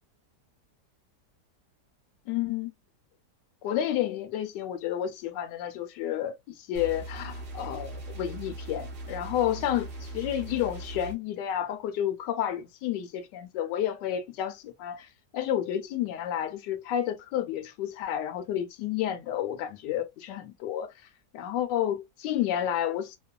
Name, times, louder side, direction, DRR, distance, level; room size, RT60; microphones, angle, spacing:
voice 1, 2.3-2.7 3.6-20.9 21.3-23.2, left 11 dB, 85° left, 1.2 m, -31 dB
sound 1, 6.7-11.1, right 1 dB, 60° right, 0.7 m, -40 dB
3.0 x 2.3 x 2.3 m
omnidirectional pair, 1.8 m